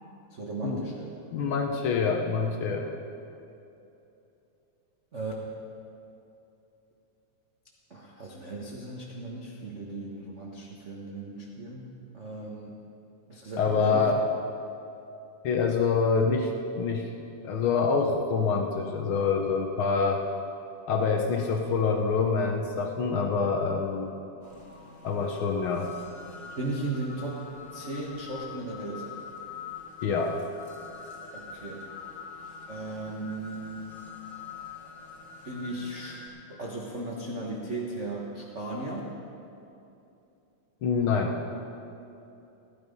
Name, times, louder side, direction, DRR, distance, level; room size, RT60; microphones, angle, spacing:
voice 1, 0.3-1.1 1.5-1.6 5.1-5.3 7.9-12.8 13.3-14.1 26.6-27.4 27.7-29.1 31.3-31.9 32.7-33.9 35.4-36.2 36.5-39.0, right 2 dB, 75° right, -3 dB, 0.6 m, -36 dB
voice 2, 1.3-2.8 13.6-14.2 15.4-16.5 16.8-17.1 17.4-20.2 20.9-24.1 25.0-25.9 30.0-30.4 40.8-41.4, left 5 dB, 85° left, 2 dB, 1.1 m, -26 dB
sound 1, 24.4-36.3, left 5 dB, 25° left, 2.7 m, -44 dB
16.0 x 11.0 x 5.3 m, 2.8 s
omnidirectional pair, 3.5 m